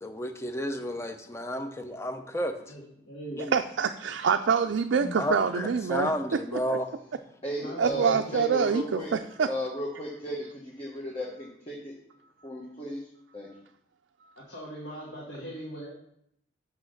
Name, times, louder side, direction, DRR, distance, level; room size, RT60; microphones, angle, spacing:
voice 1, 0.0-2.7 3.4-3.5 5.0-6.9, equal, 15° left, 7 dB, 0.6 m, -32 dB
voice 2, 2.7-3.4 7.6-8.3 14.4-15.9, right 1 dB, 70° left, -5 dB, 1.9 m, -41 dB
voice 3, 3.5-6.1 6.5-6.8 7.8-9.5, right 6 dB, 70° right, 6 dB, 0.4 m, -26 dB
voice 4, 7.4-9.1 9.5-11.9 12.4-13.0 13.3-13.5, equal, 30° left, -3 dB, 1.2 m, -35 dB
6.1 x 5.7 x 6.5 m, 0.74 s
head